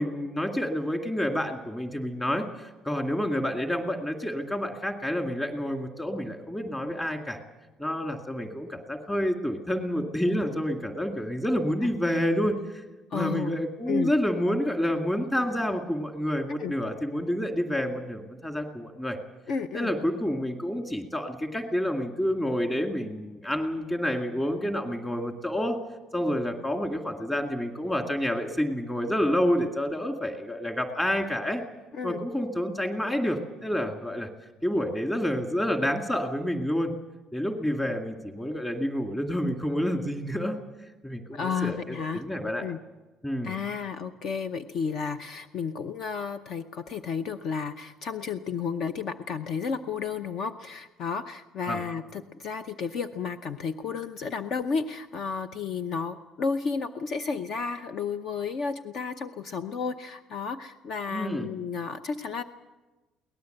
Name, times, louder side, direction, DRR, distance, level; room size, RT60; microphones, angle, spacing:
voice 1, 0.0-7.4 7.8-12.6 13.1-19.2 19.7-25.8 26.1-31.6 32.0-34.3 34.6-36.9 37.3-40.6 41.0-42.6 43.2-43.5 51.7-51.8 61.1-61.5, equal, 10° left, 4 dB, 2.2 m, -28 dB
voice 2, 13.1-13.6 13.9-14.1 16.6-16.7 19.5-19.9 31.9-32.2 41.3-42.2 42.6-42.8 43.4-62.4, left 5 dB, 45° left, 9 dB, 0.8 m, -32 dB
23.0 x 18.5 x 7.9 m, 1.1 s
cardioid pair, 175°, 0 cm